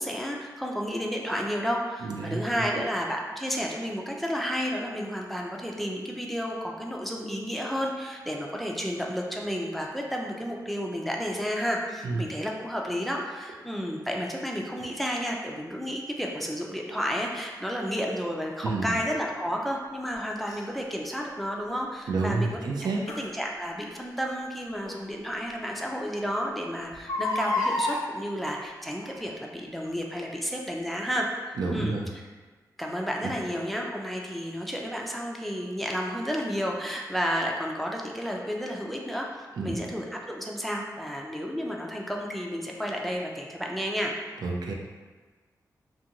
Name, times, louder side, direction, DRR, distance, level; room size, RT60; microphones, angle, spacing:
voice 1, 0.0-32.0 32.8-39.3 39.6-44.1, equal, ahead, -1 dB, 0.4 m, -31 dB
voice 2, 2.0-2.4 2.7-2.8 12.0-12.3 18.6-19.0 22.1-23.0 31.6-32.1 33.2-33.3 39.6-39.8 44.4-44.7, right 3 dB, 75° right, 0 dB, 0.4 m, -29 dB
Crying sobbing, 20.5-20.6 23.1-23.3 24.9-25.0 25.5-25.6 25.8-25.9 26.9-28.0 29.0-29.3 29.9-30.0, left 2 dB, 60° left, 0.5 m, -29 dB
2.5 x 2.2 x 2.8 m, 1.3 s
cardioid pair, 55°, 7 cm